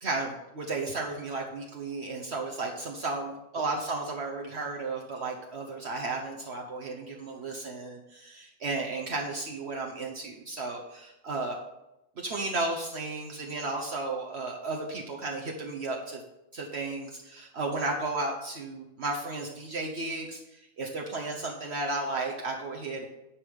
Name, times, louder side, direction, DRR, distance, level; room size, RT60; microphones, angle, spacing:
voice 1, 0.0-11.6 12.2-16.2 16.5-20.4 20.8-23.1, right 3 dB, 55° right, 0 dB, 1.2 m, -34 dB
10.0 x 5.4 x 5.3 m, 0.91 s
omnidirectional pair, 1.3 m